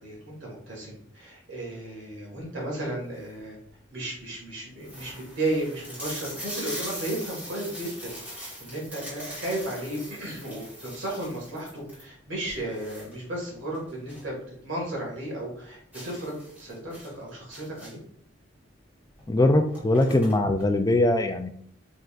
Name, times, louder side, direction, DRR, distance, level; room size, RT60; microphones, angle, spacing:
voice 1, 0.0-3.6 3.9-14.4 14.6-18.0, right 1 dB, 65° right, -3 dB, 1.8 m, -34 dB
sound 1, 3.1-3.4 4.1-4.2 4.4-4.5 4.8-14.4 14.7-14.8 15.2-15.3 15.9-18.2 19.1-19.2 19.5-20.7, equal, 10° right, 1.7 m, -41 dB
voice 2, 19.3-21.5, left 1 dB, 20° left, 7 dB, 0.4 m, -21 dB
5.3 x 3.7 x 2.5 m, 0.64 s
head